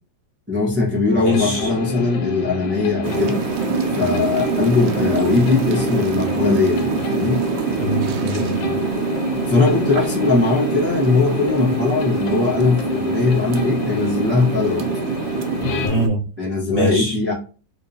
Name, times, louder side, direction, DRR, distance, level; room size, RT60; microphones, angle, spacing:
voice 1, 0.5-3.4 3.9-7.4 9.4-14.8 16.4-17.3, left 3 dB, 10° right, -5 dB, 0.6 m, -20 dB
voice 2, 1.1-1.7 7.8-8.8 15.8-16.3 16.7-17.2, equal, 40° left, -3 dB, 1.1 m, -24 dB
sound 1, 1.2-15.9, left 3 dB, 80° left, 1.5 m, -28 dB
sound 2, 3.0-16.1, right 7 dB, 90° right, 1.3 m, -25 dB
3.6 x 2.6 x 2.7 m, 0.36 s
omnidirectional pair, 2.0 m